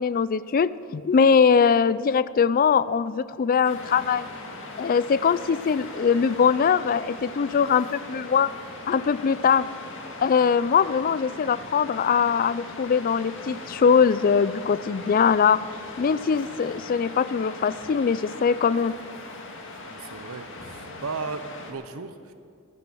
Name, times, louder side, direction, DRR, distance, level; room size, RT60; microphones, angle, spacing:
voice 1, 0.0-4.3 4.8-8.5 8.9-9.7 10.2-15.6 16.0-18.9, left 6 dB, 40° left, 18 dB, 0.4 m, -21 dB
Waves surf, 3.6-21.7, left 2 dB, 65° left, 1.8 m, -40 dB
voice 2, 19.8-22.3, right 4 dB, 85° right, 10 dB, 0.8 m, -36 dB
15.0 x 11.0 x 7.0 m, 2.3 s
head